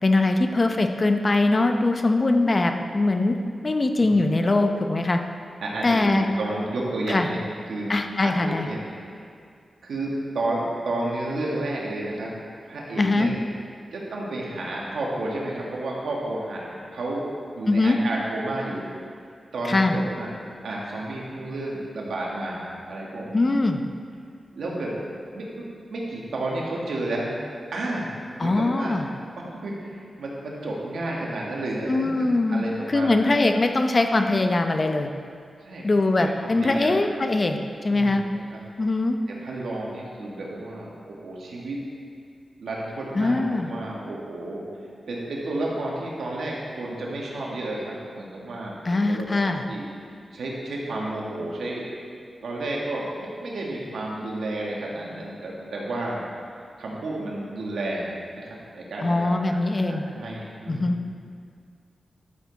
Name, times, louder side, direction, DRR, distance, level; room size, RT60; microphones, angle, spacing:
voice 1, 0.0-3.4 3.6-5.2 5.8-6.3 7.1-7.3 7.9-8.7 13.0-13.3 17.7-18.0 19.7-20.0 23.3-23.8 28.4-29.1 31.9-35.1 35.8-37.6 37.8-38.2 38.8-39.2 43.1-43.7 48.8-49.6 59.0-60.0 60.7-61.0, left 2 dB, 40° left, 5 dB, 0.7 m, -22 dB
voice 2, 5.6-7.9 8.2-9.3 9.8-12.3 12.6-13.3 13.9-17.3 17.5-18.9 19.5-20.4 20.6-23.4 24.5-25.0 25.3-27.3 27.7-29.0 29.4-33.2 35.6-35.9 36.2-37.0 37.9-38.6 39.3-41.8 42.6-44.6 45.1-49.9 50.3-51.9 52.4-56.2 56.8-58.1 58.4-59.4 59.9-61.1, right 2 dB, 90° right, -3 dB, 1.8 m, -31 dB
12.0 x 6.9 x 4.1 m, 2.3 s
cardioid pair, 75°, 0 cm